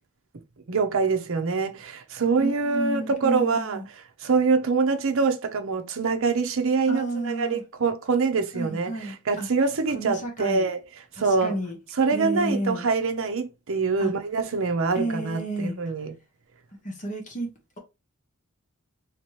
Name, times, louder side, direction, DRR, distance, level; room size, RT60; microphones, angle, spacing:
voice 1, 0.7-3.8 4.2-10.8 11.2-11.6 12.0-16.1, right 4 dB, 65° right, 0.7 m, -25 dB
voice 2, 2.4-3.9 6.9-7.6 8.5-9.5 9.9-10.7 11.2-11.8 12.1-12.8 14.0-14.1 14.9-15.8 16.8-17.5, right 2 dB, 35° left, 1.3 m, -31 dB
3.2 x 2.9 x 3.1 m
head